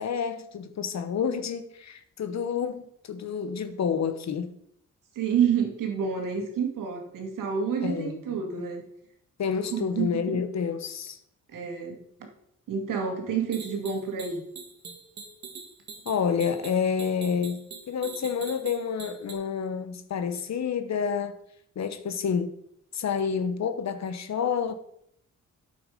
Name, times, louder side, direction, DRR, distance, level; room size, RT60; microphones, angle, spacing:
voice 1, 0.0-4.5 7.8-8.4 9.4-11.2 16.1-17.6 17.9-21.4 21.8-22.5 22.9-24.7, left 6 dB, 55° left, 1.0 m, -29 dB
voice 2, 5.1-8.8 9.7-10.4 11.5-12.0 12.7-14.4, right 7 dB, 85° right, 2.3 m, -29 dB
sound 1, 13.5-19.3, right 5 dB, 60° right, 2.0 m, -43 dB
8.9 x 7.0 x 5.0 m
cardioid pair, 100°, 32 cm